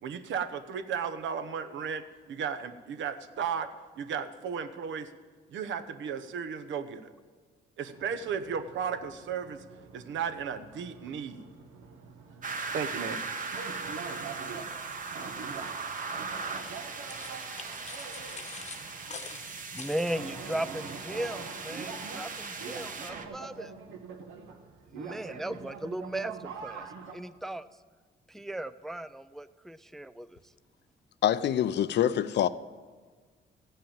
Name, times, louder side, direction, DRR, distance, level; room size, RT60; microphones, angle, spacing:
voice 1, 0.0-3.7 4.0-5.1 5.5-7.1 7.8-9.6 9.9-11.4 12.7-13.2, right 7 dB, 70° right, 0.9 m, -35 dB
sound 1, 7.9-27.2, right 5 dB, 90° right, 1.3 m, -45 dB
sound 2, 12.4-23.3, right 4 dB, 40° right, 1.2 m, -39 dB
sound 3, 16.5-20.6, left 5 dB, 35° left, 1.0 m, -46 dB
voice 2, 19.7-23.7 24.9-27.7 28.3-30.4, right 1 dB, ahead, 0.3 m, -37 dB
voice 3, 31.2-32.5, left 10 dB, 60° left, 0.5 m, -25 dB
14.5 x 5.6 x 8.8 m
cardioid pair, 90°, 20 cm